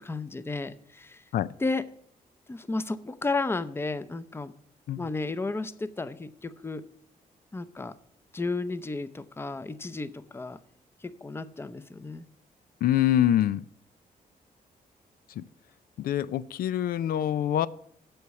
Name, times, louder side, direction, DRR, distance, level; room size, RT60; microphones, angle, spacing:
voice 1, 0.0-1.2 1.6-1.9 2.5-4.5 5.0-6.8 7.5-7.9 8.3-10.6 11.0-12.2, left 3 dB, 15° left, 14 dB, 0.6 m, -33 dB
voice 2, 12.8-13.6 15.4-15.5 16.0-17.7, left 11 dB, 85° left, 17 dB, 0.4 m, -25 dB
7.8 x 7.0 x 8.2 m, 0.63 s
cardioid pair, 110°, 15 cm